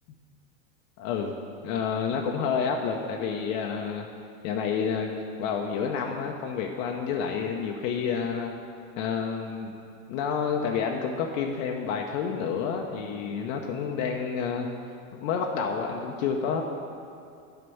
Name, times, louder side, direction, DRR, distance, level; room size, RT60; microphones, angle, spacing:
voice 1, 1.0-1.4 1.6-4.1 4.4-8.5 9.0-9.7 10.1-14.7 15.1-16.6, left 6 dB, 70° left, 1 dB, 0.9 m, -29 dB
7.9 x 5.0 x 7.0 m, 2.5 s
supercardioid pair, 110°, 41 cm